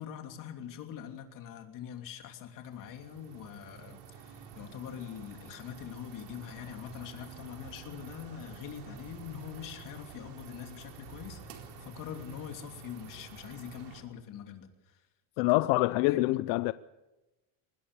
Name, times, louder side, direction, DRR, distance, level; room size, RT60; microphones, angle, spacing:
voice 1, 0.0-14.7 15.4-15.5 16.0-16.4, left 9 dB, 50° left, 3.0 m, -44 dB
sound 1, 2.6-14.0, right 5 dB, 80° right, 4.2 m, -49 dB
voice 2, 15.4-16.7, left 20 dB, 80° left, 0.7 m, -26 dB
24.5 x 20.0 x 6.9 m
cardioid pair, 170°, 41 cm